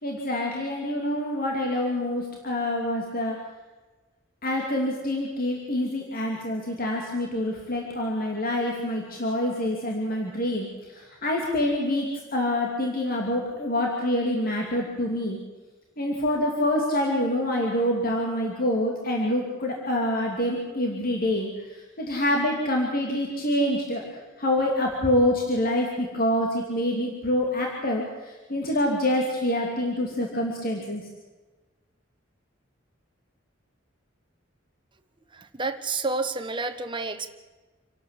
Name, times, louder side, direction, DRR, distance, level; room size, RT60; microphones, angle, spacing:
voice 1, 0.0-3.4 4.4-15.4 16.0-31.0, left 1 dB, 50° left, 0 dB, 2.8 m, -26 dB
voice 2, 35.3-37.3, right 3 dB, 25° right, 7 dB, 1.3 m, -30 dB
27.0 x 12.0 x 8.4 m, 1.3 s
head